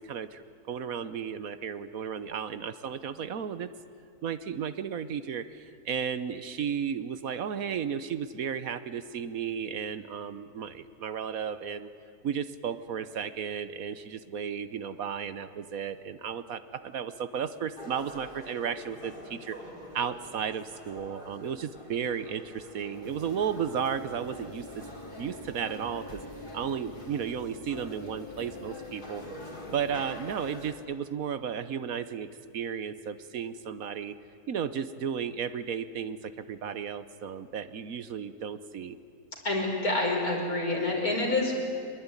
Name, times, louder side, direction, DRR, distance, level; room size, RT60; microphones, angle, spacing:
voice 1, 0.0-3.7 4.2-11.9 12.2-19.6 19.9-24.8 25.2-26.2 26.5-29.2 29.7-34.2 34.5-39.0, right 7 dB, 65° right, 13 dB, 1.3 m, -34 dB
sound 1, 17.8-30.7, left 1 dB, 30° left, 3.4 m, -47 dB
sound 2, 23.0-30.7, left 1 dB, 15° left, 2.3 m, -45 dB
voice 2, 39.4-41.5, left 2 dB, 65° left, 0 dB, 5.5 m, -27 dB
25.0 x 21.5 x 9.7 m, 2.2 s
omnidirectional pair, 1.6 m